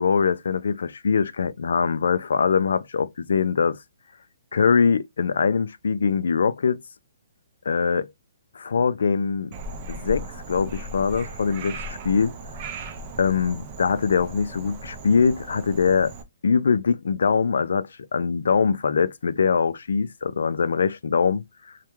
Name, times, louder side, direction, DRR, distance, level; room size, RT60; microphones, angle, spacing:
voice 1, 0.0-3.8 4.5-6.8 7.7-8.1 8.5-9.5 9.9-12.3 13.2-16.1 16.4-21.4, left 5 dB, 75° left, 0.3 m, -22 dB
Frog, 9.5-16.2, right 2 dB, 30° right, 0.5 m, -37 dB
2.2 x 2.2 x 3.0 m
hypercardioid pair, 160°, 0 cm